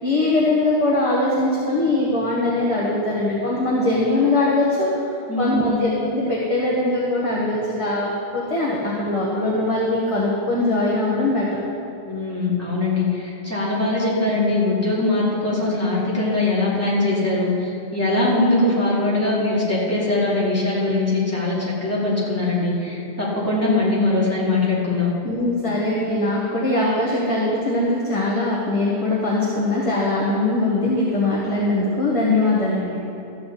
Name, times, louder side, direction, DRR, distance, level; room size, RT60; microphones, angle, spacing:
voice 1, 0.0-4.9 5.4-11.6 25.2-33.0, left 2 dB, 30° left, -6 dB, 1.4 m, -21 dB
voice 2, 5.3-5.8 12.0-25.1, left 2 dB, 15° left, -8 dB, 2.7 m, -21 dB
13.5 x 8.4 x 4.2 m, 2.9 s
omnidirectional pair, 1.1 m